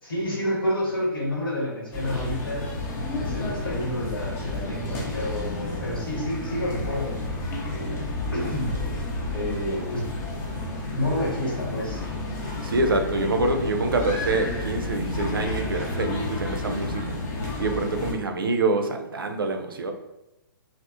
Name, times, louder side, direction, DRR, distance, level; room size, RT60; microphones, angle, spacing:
voice 1, 0.0-2.7 3.1-7.2 7.6-8.0 8.3-8.7 9.3-10.1 10.9-12.1, left 1 dB, 75° left, -4 dB, 1.2 m, -29 dB
sound 1, 1.9-18.1, left 2 dB, 20° left, 0.5 m, -31 dB
voice 2, 12.6-17.1 17.6-19.9, right 2 dB, 70° right, 4 dB, 0.4 m, -26 dB
2.7 x 2.0 x 2.4 m, 0.97 s
figure-of-eight pair, 120°, 12 cm